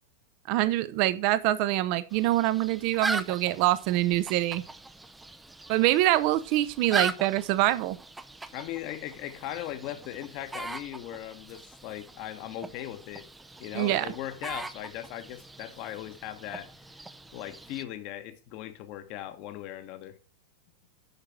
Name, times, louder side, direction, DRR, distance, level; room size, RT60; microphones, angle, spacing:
voice 1, 0.5-4.6 5.7-8.0 13.7-14.1, right 15 dB, 45° right, 0.6 m, -25 dB
sound 1, 2.1-17.8, right 2 dB, 5° right, 0.5 m, -40 dB
voice 2, 8.5-13.3 13.6-16.7 17.3-20.2, left 12 dB, 40° left, 1.1 m, -38 dB
6.7 x 5.9 x 5.8 m
figure-of-eight pair, 90°, 0 cm